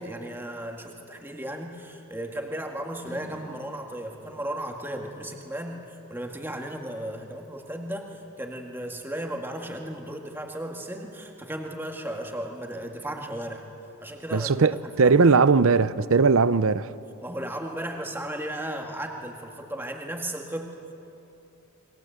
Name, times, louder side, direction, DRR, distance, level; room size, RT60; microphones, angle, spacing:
voice 1, 0.0-13.7 14.0-15.4 17.2-20.9, right 1 dB, 10° right, 2.0 m, -35 dB
Acoustic guitar / Strum, 3.0-7.8, right 1 dB, 35° left, 4.6 m, -51 dB
voice 2, 14.3-16.9, right 4 dB, 65° right, 0.6 m, -19 dB
28.0 x 22.0 x 8.0 m
head